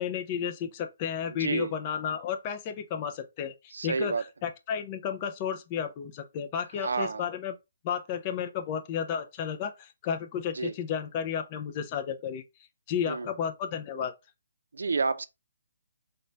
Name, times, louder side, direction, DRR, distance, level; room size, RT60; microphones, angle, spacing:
voice 1, 0.0-7.6 7.8-12.4 12.9-14.1, left 8 dB, 20° left, 0.3 m, -32 dB
voice 2, 1.4-1.7 3.7-4.2 6.8-7.2 10.6-10.7 13.1-13.3 14.7-15.3, right 4 dB, 90° right, 0.4 m, -29 dB
3.8 x 2.2 x 3.2 m
hypercardioid pair, 175°, 0 cm